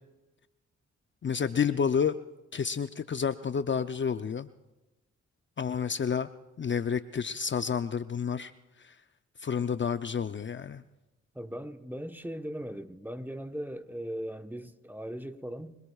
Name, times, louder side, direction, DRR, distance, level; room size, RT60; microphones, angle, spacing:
voice 1, 1.2-2.2 2.5-4.5 5.6-6.3 6.6-8.5 9.4-10.8, left 6 dB, 40° left, 0.6 m, -29 dB
voice 2, 11.3-15.8, equal, 5° right, 1.2 m, -38 dB
29.5 x 19.5 x 2.4 m
supercardioid pair, 50°, 29 cm